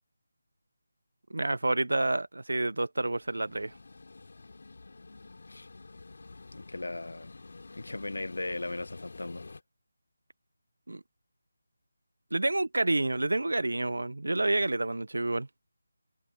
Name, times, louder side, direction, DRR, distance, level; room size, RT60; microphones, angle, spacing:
voice 1, 1.3-3.7 10.9-11.0 12.3-15.5, right 2 dB, 80° right, 0.6 m, -29 dB
sound 1, 3.1-9.6, left 3 dB, 65° left, 3.9 m, -49 dB
voice 2, 6.5-7.3 7.7-9.4, left 2 dB, 80° left, 1.2 m, -37 dB
figure-of-eight pair, 165°, 0 cm